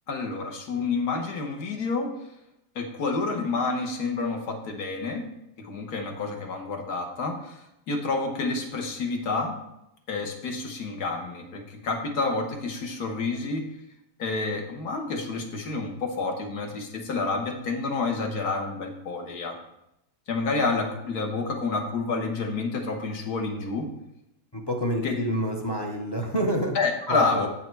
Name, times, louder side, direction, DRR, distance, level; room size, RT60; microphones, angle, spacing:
voice 1, 0.1-2.1 2.7-5.2 5.6-7.6 7.9-9.5 10.1-13.7 14.2-19.6 20.3-23.9 25.0-25.2 26.7-27.5, left 3 dB, 65° left, 3 dB, 1.6 m, -29 dB
voice 2, 24.5-26.8 27.1-27.5, equal, 25° left, 1 dB, 0.6 m, -28 dB
8.3 x 5.6 x 4.6 m, 0.84 s
omnidirectional pair, 1.8 m